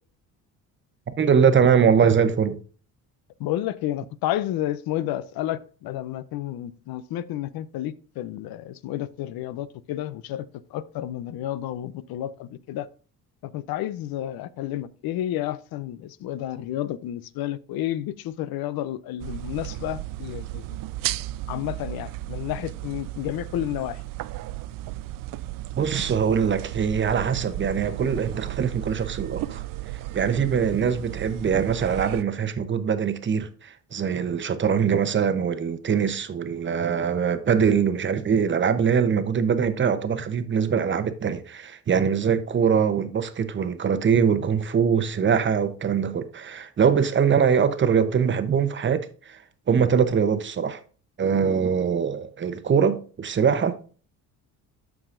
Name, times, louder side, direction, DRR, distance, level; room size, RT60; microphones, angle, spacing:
voice 1, 1.2-2.6 25.8-29.6 30.1-49.4 49.7-50.8 51.2-53.7, right 7 dB, 30° right, 0.9 m, -22 dB
voice 2, 3.4-12.9 13.4-20.8 21.5-24.0, left 13 dB, 75° left, 0.7 m, -31 dB
sound 1, 19.2-32.2, right 16 dB, 65° right, 0.5 m, -34 dB
13.0 x 4.9 x 2.6 m
cardioid pair, 110°, 36 cm